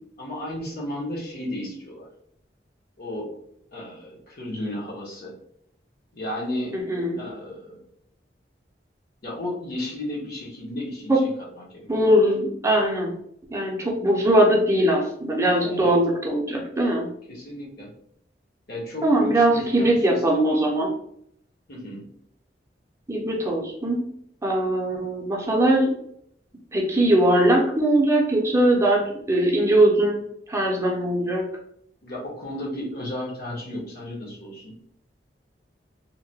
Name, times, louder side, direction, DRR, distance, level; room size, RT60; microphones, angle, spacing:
voice 1, 0.2-2.1 3.0-3.3 3.7-5.3 6.1-6.8 7.2-7.8 9.2-11.3 11.6-11.9 15.6-16.0 17.3-17.9 18.7-20.7 21.7-22.1 32.0-34.7, left 1 dB, 60° left, -3 dB, 0.9 m, -34 dB
voice 2, 6.9-7.2 11.1-11.2 11.9-13.1 13.5-17.1 19.0-20.9 23.1-24.0 24.4-25.9 26.7-30.2 30.5-31.5, right 1 dB, 15° right, -1 dB, 0.5 m, -21 dB
2.8 x 2.1 x 2.7 m, 0.70 s
head